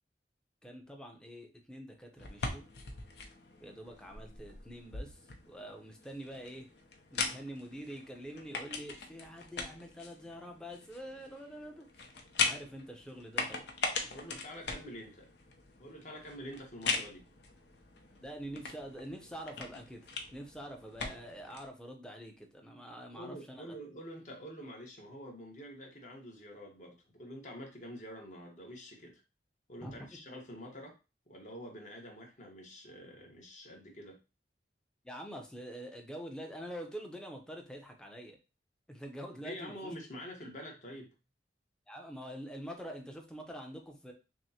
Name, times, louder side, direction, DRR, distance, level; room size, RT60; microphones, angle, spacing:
voice 1, 0.6-2.6 3.6-6.7 7.1-11.9 12.4-13.7 18.1-23.7 29.8-30.2 35.0-38.4 38.9-39.9 41.9-44.1, equal, 5° left, 3 dB, 0.6 m, -46 dB
sound 1, 2.2-21.7, left 4 dB, 75° left, 0.6 m, -41 dB
voice 2, 14.0-15.3 15.8-17.3 23.1-29.2 29.7-30.9 31.3-34.2 39.4-41.1, equal, 45° left, 0 dB, 1.1 m, -47 dB
6.0 x 2.1 x 2.8 m, 0.30 s
head